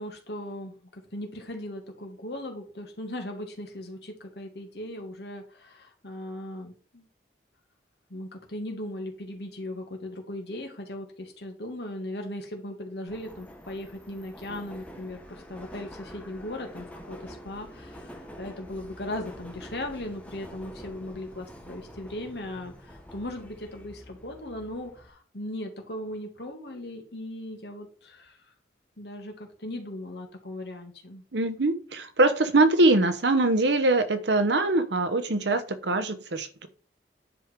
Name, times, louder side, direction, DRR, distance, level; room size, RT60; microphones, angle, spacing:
voice 1, 0.0-7.1 8.1-28.4 29.0-31.2, left 1 dB, 70° left, 3 dB, 2.2 m, -38 dB
Subway metro underground, 13.1-25.1, equal, 10° left, 1.2 m, -46 dB
voice 2, 31.3-36.7, right 2 dB, 80° right, 12 dB, 1.0 m, -23 dB
9.9 x 5.2 x 4.6 m, 0.42 s
head